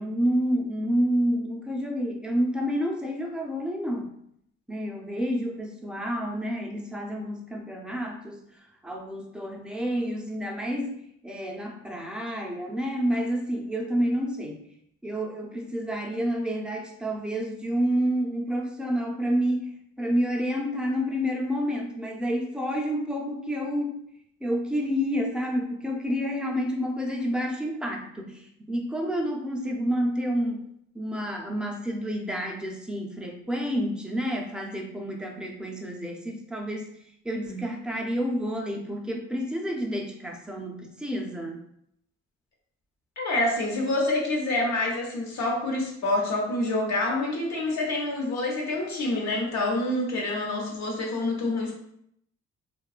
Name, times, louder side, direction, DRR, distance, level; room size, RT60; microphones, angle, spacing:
voice 1, 0.0-4.1 4.7-8.4 8.8-14.6 15.0-19.7 20.0-24.0 24.4-30.7 30.9-36.9 37.2-41.6, equal, 5° right, 0 dB, 0.4 m, -29 dB
voice 2, 43.2-51.7, left 2 dB, 65° left, -1 dB, 0.8 m, -27 dB
2.6 x 2.2 x 2.3 m, 0.72 s
cardioid pair, 90°, 30 cm